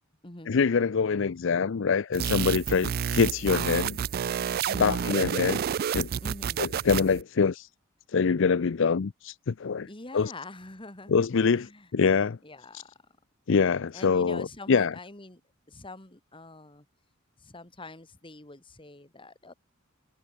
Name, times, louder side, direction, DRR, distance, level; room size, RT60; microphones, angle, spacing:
voice 1, 0.5-4.0 4.8-5.6 5.9-6.1 6.6-7.7 8.1-9.9 10.1-10.3 11.1-12.4 12.7-12.8 13.5-14.9, left 5 dB, 65° left, 0.5 m, -25 dB
sound 1, 2.1-7.2, right 8 dB, 45° right, 0.3 m, -30 dB
voice 2, 4.7-5.2 6.2-6.7 9.8-11.2 11.5-11.9 12.4-12.9 13.9-15.4 15.7-16.9 17.4-19.5, left 2 dB, 25° left, 2.5 m, -45 dB
head